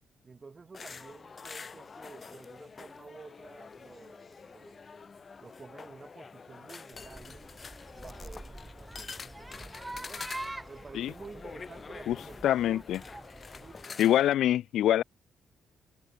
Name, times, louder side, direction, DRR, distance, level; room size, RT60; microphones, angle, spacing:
voice 1, 0.2-4.8 5.4-7.5 7.9-10.3 10.7-12.9 13.5-14.0, right 4 dB, 30° right, 7.8 m, -51 dB
sound 1, 0.7-14.3, left 5 dB, 35° left, 5.3 m, -47 dB
sound 2, 6.9-13.8, right 2 dB, 10° right, 2.5 m, -45 dB
voice 2, 12.4-13.0 14.0-15.0, left 12 dB, 75° left, 0.3 m, -24 dB
cardioid pair, 90°, 0 cm